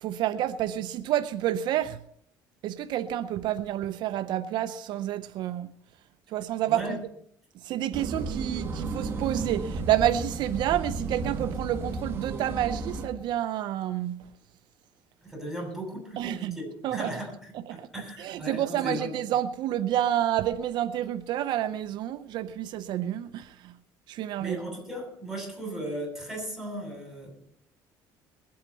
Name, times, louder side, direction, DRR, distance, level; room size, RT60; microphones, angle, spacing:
voice 1, 0.0-2.0 2.6-5.7 6.3-7.0 7.5-14.3 16.2-16.6 16.8-17.2 17.5-17.9 18.2-23.7 24.1-24.6, right 12 dB, 70° right, 0.7 m, -29 dB
sound 1, 7.9-13.1, right 3 dB, 30° right, 2.3 m, -33 dB
voice 2, 15.2-17.3 17.7-19.1 24.4-27.3, equal, ahead, 7.7 m, -36 dB
21.5 x 8.7 x 5.6 m
cardioid pair, 125°, 8 cm